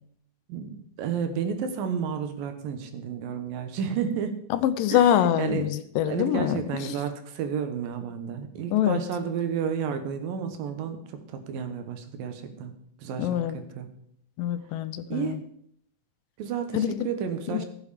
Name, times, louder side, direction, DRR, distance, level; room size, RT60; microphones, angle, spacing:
voice 1, 0.5-4.3 4.9-5.7 6.1-12.7 13.0-13.9 15.1-15.4 16.4-17.7, right 7 dB, 80° right, 7 dB, 3.0 m, -31 dB
voice 2, 4.5-6.6 8.7-9.0 13.2-13.6 14.4-15.4 16.7-17.1 17.5-17.7, left 11 dB, 80° left, 12 dB, 2.3 m, -24 dB
15.5 x 7.9 x 5.0 m, 0.70 s
omnidirectional pair, 4.0 m